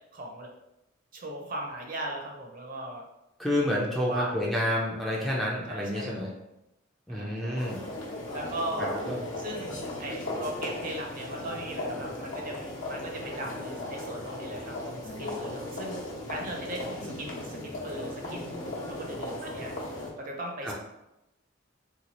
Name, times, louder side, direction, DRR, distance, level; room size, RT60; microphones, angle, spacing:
voice 1, 0.1-0.5 1.1-3.0 3.9-4.5 5.7-6.3 7.1-7.7 8.3-9.0 9.4-16.0 16.3-18.6 18.9-19.7 20.2-20.7, right 1 dB, 45° right, 0 dB, 0.6 m, -38 dB
voice 2, 3.4-6.3 7.1-7.8 8.8-9.2 20.6-20.7, left 1 dB, ahead, -4 dB, 0.4 m, -29 dB
sound 1, 7.6-20.1, left 1 dB, 70° left, 0.8 m, -37 dB
2.9 x 2.3 x 4.0 m, 0.90 s
head